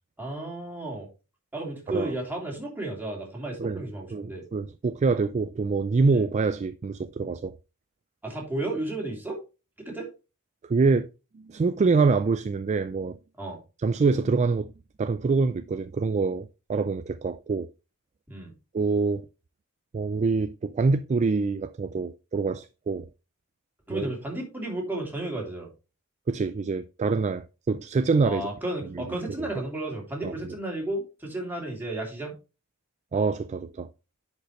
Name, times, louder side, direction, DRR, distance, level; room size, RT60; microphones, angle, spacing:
voice 1, 0.2-1.1 1.5-4.4 6.1-6.2 8.2-9.4 9.8-10.1 13.4-13.6 18.3-18.5 23.9-25.7 28.2-32.3, right 1 dB, 10° right, 3.0 m, -33 dB
voice 2, 4.1-7.5 10.7-11.1 11.3-13.2 13.8-14.7 15.0-17.7 18.7-19.3 19.9-23.1 23.9-24.1 26.3-28.5 28.9-29.5 30.2-30.3 33.1-33.9, right 4 dB, 30° right, 0.3 m, -25 dB
10.0 x 5.2 x 3.1 m
head